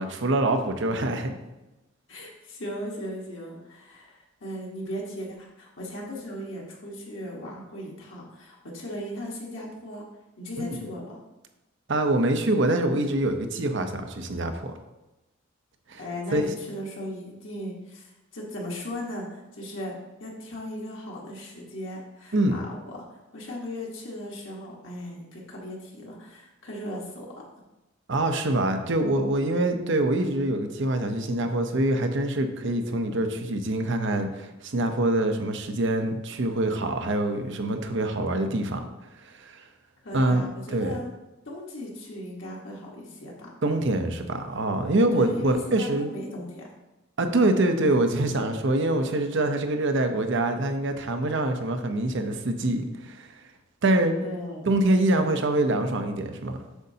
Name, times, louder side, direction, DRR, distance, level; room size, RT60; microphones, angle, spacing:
voice 1, 0.0-1.3 10.6-10.8 11.9-14.7 15.9-16.0 16.3-16.5 22.3-22.6 28.1-38.9 39.2-39.7 40.1-41.0 43.6-46.1 47.2-53.4 53.8-54.1 54.7-56.6, right 1 dB, 60° right, 6 dB, 0.7 m, -25 dB
voice 2, 2.1-10.0 10.4-11.2 16.0-19.9 20.2-27.5 40.0-41.1 41.4-43.5 45.1-46.7 54.2-54.7, equal, 60° left, -3 dB, 1.4 m, -37 dB
8.0 x 6.5 x 2.8 m, 1.0 s
head